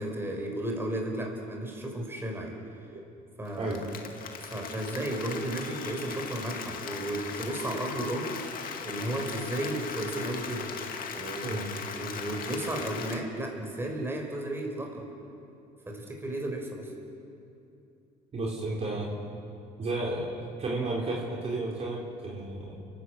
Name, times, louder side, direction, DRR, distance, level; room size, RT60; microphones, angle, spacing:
voice 1, 0.0-2.6 3.4-3.8 4.4-8.3 8.8-10.7 11.1-15.0 15.9-16.9, right 1 dB, 15° right, 0 dB, 5.2 m, -34 dB
Applause, 3.5-13.2, left 6 dB, 55° left, 2.2 m, -39 dB
voice 2, 3.6-3.9 11.4-11.7 18.3-19.1 19.8-22.8, right 2 dB, 40° right, -3 dB, 4.0 m, -32 dB
30.0 x 13.0 x 8.3 m, 2.8 s
cardioid pair, 110°, 17 cm